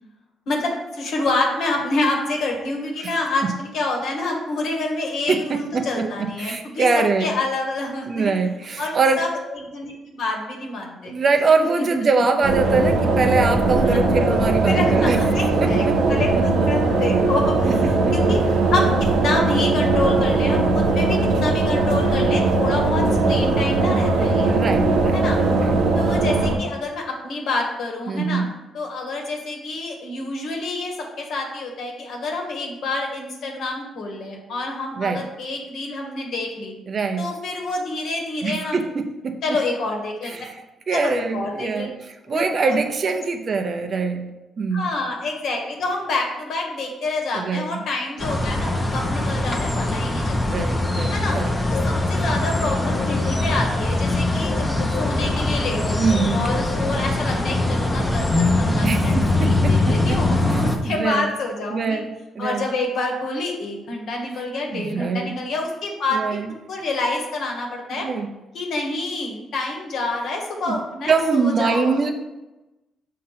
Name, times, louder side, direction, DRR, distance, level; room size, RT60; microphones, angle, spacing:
voice 1, 0.5-8.3 8.8-11.1 11.6-11.9 13.8-14.0 14.7-15.1 15.3-18.4 18.7-24.5 25.1-25.4 25.9-28.4 28.7-36.7 37.2-39.0 39.4-40.3 40.9-41.9 42.3-42.8 44.7-50.4 51.1-51.4 51.7-56.0 56.3-62.0 62.4-66.4 66.7-68.1 68.5-72.0, left 2 dB, 70° left, 1 dB, 1.3 m, -27 dB
voice 2, 5.3-7.3 8.0-9.2 11.1-15.2 15.6-16.7 17.6-18.4 24.5-25.2 25.6-25.7 28.1-28.5 35.0-35.3 36.9-37.3 38.4-39.4 40.2-40.6 40.9-41.9 42.3-44.8 47.3-47.8 50.5-51.5 56.0-56.4 58.8-60.2 60.5-61.3 61.7-62.1 62.3-62.7 64.7-65.3 66.1-66.5 68.0-68.3 70.7-70.8 71.1-72.1, right 4 dB, 45° right, 5 dB, 0.6 m, -23 dB
sound 1, 12.4-26.6, right 3 dB, 80° right, 0.8 m, -19 dB
sound 2, 48.2-60.8, left 2 dB, 20° left, 0.8 m, -22 dB
6.3 x 2.8 x 5.6 m, 1.0 s
cardioid pair, 90°, 0 cm